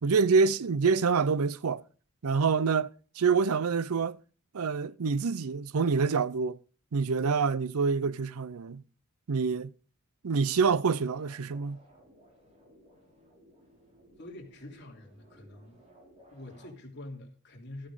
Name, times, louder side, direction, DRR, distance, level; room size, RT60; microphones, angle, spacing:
voice 1, 0.0-1.8 2.2-4.2 4.5-6.6 6.9-8.8 9.3-9.7 10.2-11.8, right 5 dB, 80° right, 0.5 m, -26 dB
sound 1, 11.1-16.7, equal, 30° right, 4.0 m, -59 dB
voice 2, 14.2-15.8 16.3-17.9, left 1 dB, 50° left, 3.1 m, -46 dB
13.5 x 8.8 x 4.9 m
head